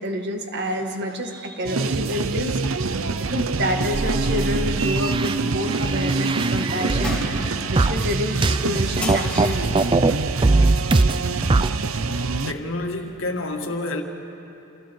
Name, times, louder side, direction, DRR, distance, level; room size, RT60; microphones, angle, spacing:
voice 1, 0.0-2.8 3.3-7.2 7.6-9.7, equal, 55° right, 4 dB, 1.9 m, -28 dB
sound 1, 1.6-12.5, right 3 dB, 85° right, 0.8 m, -25 dB
sound 2, 3.9-7.4 7.8-10.1 10.4-11.7, right 3 dB, 25° right, 0.4 m, -22 dB
sound 3, 6.7-10.9, left 1 dB, 5° left, 4.3 m, -35 dB
voice 2, 12.4-14.0, left 2 dB, 70° left, 3 dB, 2.0 m, -28 dB
28.5 x 27.5 x 4.7 m, 2.9 s
head